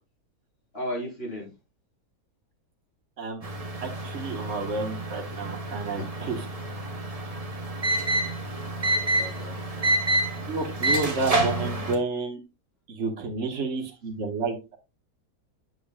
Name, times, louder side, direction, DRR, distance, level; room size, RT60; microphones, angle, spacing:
voice 1, 0.7-1.5 8.8-10.2, equal, 35° left, -3 dB, 4.0 m, -37 dB
sound 1, 3.4-11.9, right 2 dB, 25° right, 1.1 m, -28 dB
voice 2, 3.8-6.4 10.5-12.4 13.0-14.8, right 3 dB, 45° right, 3 dB, 1.6 m, -30 dB
8.6 x 6.9 x 2.3 m, 0.26 s
omnidirectional pair, 1.8 m